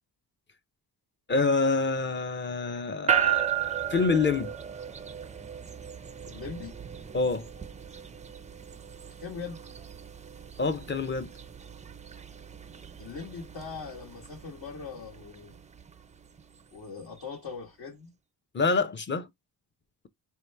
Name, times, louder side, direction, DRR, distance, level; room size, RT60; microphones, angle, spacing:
voice 1, 1.3-4.5 7.1-7.5 10.6-11.3 18.5-19.3, left 4 dB, 30° left, 0.6 m, -27 dB
sound 1, 3.1-17.4, right 9 dB, 20° right, 0.4 m, -35 dB
voice 2, 6.3-6.7 9.2-9.6 13.0-15.6 16.7-18.1, left 5 dB, 65° left, 1.4 m, -40 dB
4.5 x 2.9 x 3.3 m
cardioid pair, 100°, 41 cm